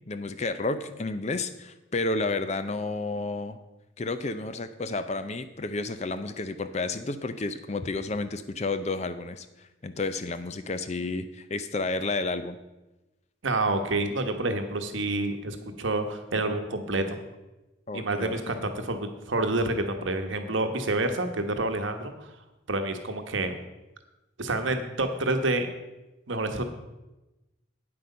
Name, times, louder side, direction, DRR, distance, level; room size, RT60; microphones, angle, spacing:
voice 1, 0.1-3.6 4.0-9.5 9.8-12.6 17.9-18.7, left 3 dB, 35° left, 11 dB, 0.5 m, -31 dB
voice 2, 13.4-17.2 17.9-22.3 22.7-23.6 24.4-25.7 26.3-26.6, right 2 dB, 70° right, 7 dB, 1.1 m, -28 dB
9.4 x 7.9 x 5.5 m, 1.0 s
head